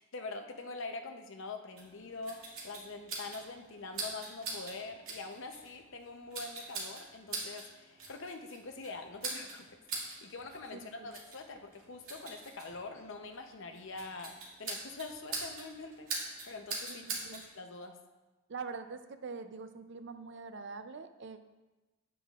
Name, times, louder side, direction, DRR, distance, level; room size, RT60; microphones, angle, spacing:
voice 1, 0.0-14.3 14.6-18.0, left 3 dB, 55° left, 5 dB, 0.7 m, -44 dB
sound 1, 1.8-17.5, right 3 dB, 70° right, 2.3 m, -44 dB
voice 2, 10.7-11.1 16.9-17.4 18.5-21.5, right 4 dB, 50° right, 10 dB, 0.5 m, -44 dB
9.1 x 9.1 x 2.4 m, 1.1 s
head